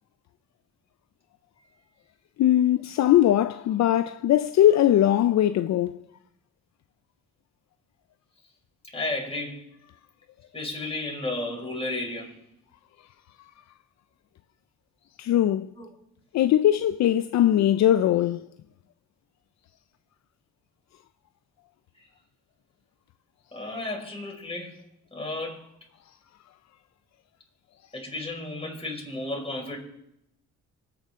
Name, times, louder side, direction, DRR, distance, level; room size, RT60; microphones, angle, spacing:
voice 1, 2.4-6.0 15.2-15.7 16.3-18.5, left 12 dB, 65° left, 0.5 m, -20 dB
voice 2, 8.9-9.6 10.5-12.3 15.8-15.9 23.5-24.7 25.1-25.6 27.9-29.8, left 2 dB, 20° left, 5.6 m, -33 dB
25.0 x 9.5 x 3.7 m
cardioid pair, 90°, 30 cm